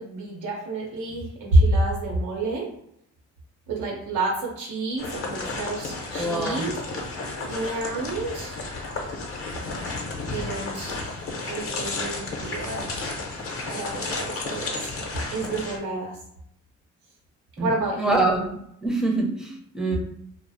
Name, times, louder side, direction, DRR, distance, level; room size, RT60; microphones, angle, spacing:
voice 1, 0.0-2.7 3.7-6.8 7.5-8.6 10.3-13.3 13.7-14.9 15.3-16.2 17.6-18.3, right 2 dB, 80° right, -3 dB, 0.7 m, -28 dB
sound 1, 5.0-15.8, left 3 dB, 50° left, 0.7 m, -32 dB
voice 2, 6.2-6.7 17.6-17.7 18.0-18.5 18.8-20.0, right 2 dB, ahead, -1 dB, 0.5 m, -25 dB
2.3 x 2.0 x 2.6 m, 0.73 s
cardioid pair, 90°, 30 cm